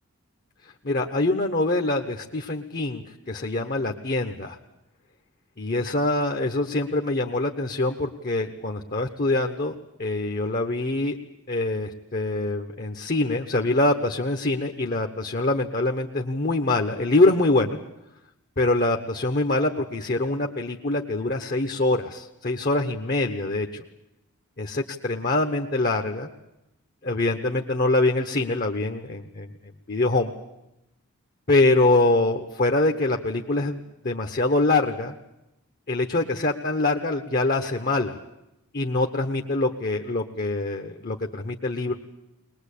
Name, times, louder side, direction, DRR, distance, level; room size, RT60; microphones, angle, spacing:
voice 1, 0.8-4.6 5.6-9.7 10.0-11.2 11.5-17.8 18.6-23.8 24.6-26.3 27.0-29.5 29.9-30.3 31.5-35.1 35.9-38.2 38.7-41.9, left 2 dB, 40° left, 4 dB, 1.1 m, -24 dB
21.5 x 20.5 x 8.5 m, 0.88 s
head